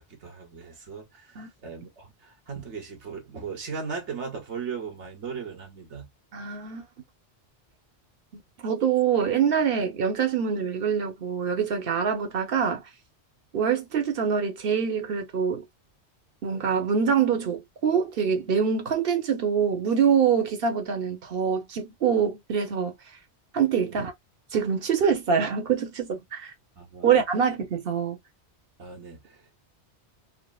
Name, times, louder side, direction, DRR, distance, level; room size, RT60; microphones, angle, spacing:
voice 1, 0.0-6.1 23.9-24.1 26.8-27.2 28.8-29.4, right 5 dB, 85° right, 1.4 m, -38 dB
voice 2, 6.3-6.9 8.3-12.8 13.5-15.6 16.4-22.9 23.5-24.1 24.5-26.5 27.0-28.2, right 7 dB, 55° right, 1.0 m, -25 dB
3.5 x 2.0 x 2.3 m
omnidirectional pair, 1.2 m